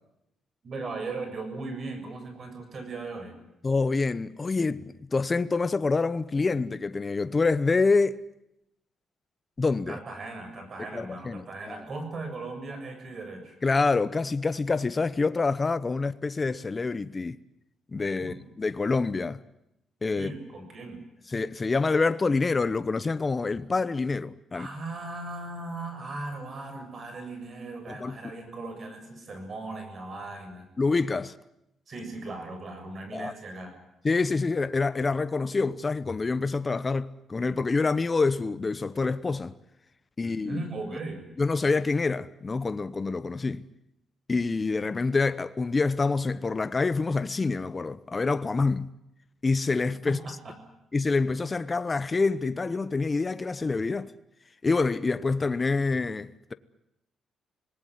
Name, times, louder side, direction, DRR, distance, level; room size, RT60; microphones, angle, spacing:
voice 1, 0.6-3.4 9.9-13.6 18.2-18.4 20.1-21.0 24.5-30.7 31.9-33.7 40.2-41.3 50.1-50.5, right 3 dB, 45° right, 7.4 m, -38 dB
voice 2, 3.6-8.2 9.6-10.0 10.9-11.8 13.6-17.4 17.9-19.4 20.0-20.3 21.3-24.7 27.9-28.2 30.8-31.4 33.1-33.3 34.0-39.5 40.2-40.6 41.4-43.6 44.3-48.9 49.4-50.2 50.9-54.1 54.6-56.5, left 3 dB, 25° left, 1.0 m, -26 dB
26.5 x 19.5 x 9.4 m
cardioid pair, 110°, 0 cm